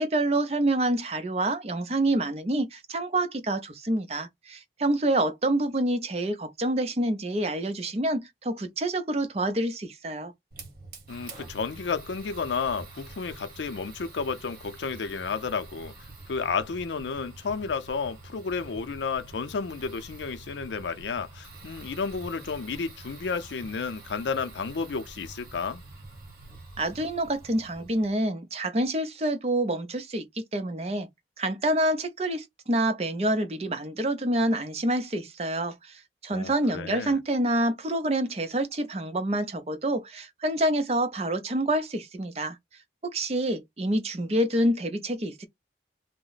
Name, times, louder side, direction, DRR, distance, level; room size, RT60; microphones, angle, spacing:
voice 1, 0.0-10.3 26.8-31.1 31.4-42.6 43.0-45.5, right 1 dB, 35° right, 0.5 m, -27 dB
Fire, 10.5-28.1, right 3 dB, 55° right, 1.1 m, -46 dB
voice 2, 11.1-15.9 16.3-25.8 36.3-37.2, left 5 dB, 85° left, 0.5 m, -32 dB
2.8 x 2.0 x 3.9 m
head